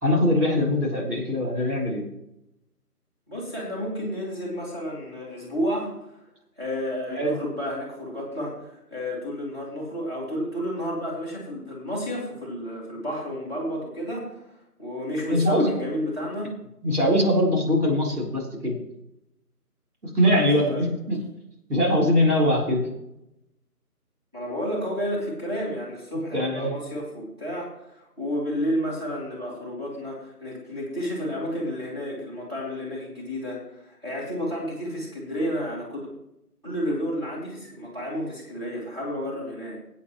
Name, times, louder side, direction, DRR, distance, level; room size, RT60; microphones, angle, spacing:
voice 1, 0.0-2.1 7.1-7.4 15.3-15.8 16.8-18.8 20.0-21.2 21.7-22.9 26.3-26.7, left 1 dB, 70° right, -3 dB, 3.8 m, -22 dB
voice 2, 3.3-5.9 6.6-14.4 14.8-16.5 20.2-20.9 24.3-36.1 36.6-39.8, equal, 15° right, -7 dB, 2.8 m, -31 dB
20.5 x 8.5 x 3.1 m, 0.86 s
figure-of-eight pair, 175°, 47 cm